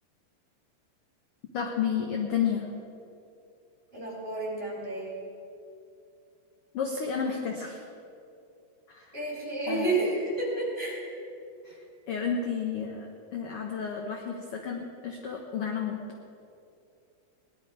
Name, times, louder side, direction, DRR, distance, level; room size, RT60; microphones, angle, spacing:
voice 1, 1.5-2.7 6.7-7.8 8.9-9.1 9.7-9.9 11.6-11.8 12.1-16.0, left 7 dB, 65° left, 1 dB, 1.4 m, -31 dB
voice 2, 3.9-5.1 9.1-11.0, right 2 dB, 15° right, -4 dB, 4.0 m, -30 dB
19.0 x 11.5 x 5.0 m, 2.6 s
omnidirectional pair, 3.9 m